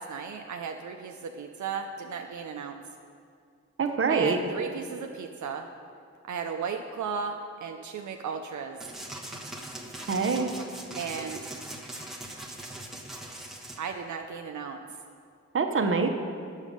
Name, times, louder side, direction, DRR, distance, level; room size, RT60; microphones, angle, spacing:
voice 1, 0.0-2.8 4.1-5.7 6.3-8.8 10.9-11.5 13.8-14.8, right 6 dB, 75° right, 4 dB, 0.5 m, -35 dB
voice 2, 3.8-4.4 10.1-10.5 15.5-16.1, right 4 dB, 45° right, 5 dB, 0.8 m, -25 dB
sound 1, 8.8-13.8, right 1 dB, ahead, 1.1 m, -41 dB
8.3 x 7.2 x 5.2 m, 2.3 s
cardioid pair, 75°, 29 cm